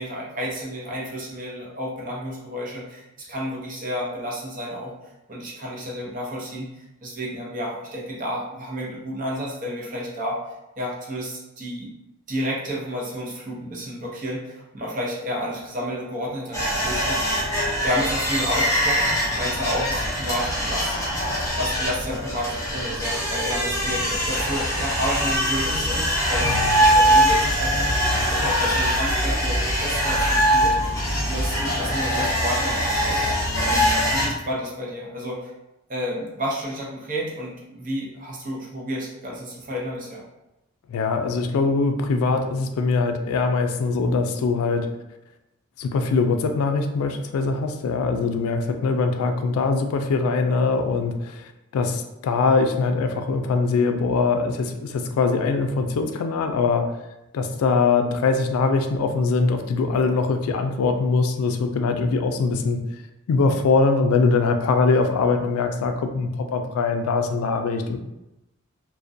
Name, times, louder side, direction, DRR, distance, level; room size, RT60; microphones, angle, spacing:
voice 1, 0.0-4.9 5.3-10.4 10.8-11.9 12.3-27.9 28.3-35.5 35.9-40.2, equal, 40° right, -4 dB, 0.6 m, -31 dB
sound 1, 16.5-34.3, equal, 15° left, 0.5 m, -22 dB
voice 2, 26.4-26.8 40.9-44.9 45.8-56.9 57.3-62.8 63.3-68.0, left 4 dB, 85° left, 6 dB, 0.3 m, -22 dB
2.3 x 2.1 x 2.5 m, 0.93 s
head